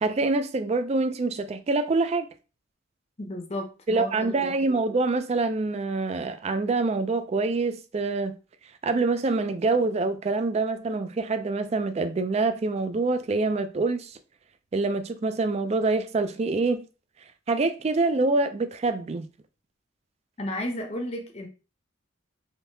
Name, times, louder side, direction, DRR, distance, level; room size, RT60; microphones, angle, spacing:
voice 1, 0.0-2.3 3.9-8.4 8.8-14.2 14.7-16.8 17.5-19.3, right 3 dB, 30° right, 0.3 m, -25 dB
voice 2, 3.2-4.5 20.4-21.5, left 1 dB, 30° left, 0.6 m, -33 dB
3.6 x 2.7 x 2.7 m
head